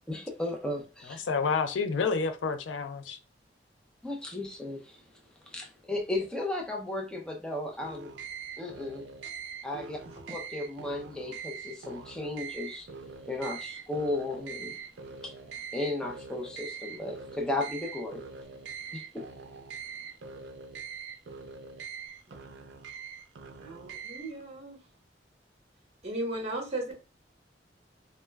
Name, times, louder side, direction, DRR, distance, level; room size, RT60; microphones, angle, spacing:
voice 1, 0.1-1.2 4.0-5.0 5.5-8.1 8.6-9.0 9.6-10.0 10.3-12.9 13.3-14.7 15.2-15.3 15.7-18.2 18.9-19.3, left 2 dB, 5° left, 0.5 m, -35 dB
voice 2, 1.1-3.2, left 5 dB, 85° left, 0.4 m, -29 dB
sound 1, 7.8-24.4, right 6 dB, 75° right, 0.4 m, -43 dB
voice 3, 23.6-24.8 26.0-26.9, right 1 dB, 35° right, 0.8 m, -36 dB
2.2 x 2.1 x 3.3 m
head